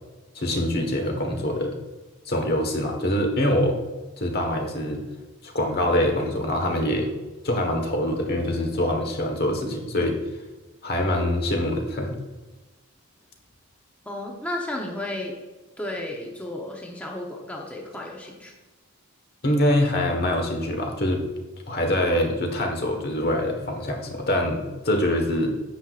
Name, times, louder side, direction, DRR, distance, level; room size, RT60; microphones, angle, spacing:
voice 1, 0.3-1.8 2.2-3.8 4.2-5.0 5.4-7.1 7.4-10.2 10.8-12.2 19.4-21.3 21.7-25.5, left 1 dB, 45° left, 3 dB, 1.4 m, -24 dB
voice 2, 14.0-15.3 15.8-18.5, left 1 dB, 5° left, -1 dB, 0.9 m, -33 dB
9.9 x 8.1 x 2.5 m, 1.2 s
head